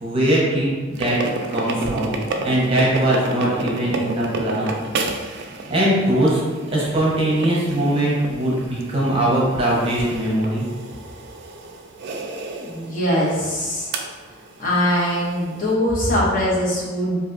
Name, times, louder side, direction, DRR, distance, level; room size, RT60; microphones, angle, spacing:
voice 1, 0.0-1.2 1.5-2.2 2.4-4.7 5.7-6.4 6.7-10.6, right 1 dB, 30° right, -5 dB, 0.7 m, -21 dB
sound 1, 0.9-15.7, right 2 dB, 55° right, 0.3 m, -32 dB
voice 2, 12.6-13.9 14.6-17.2, left 1 dB, 45° left, -6 dB, 0.8 m, -22 dB
3.2 x 2.6 x 2.5 m, 1.4 s
head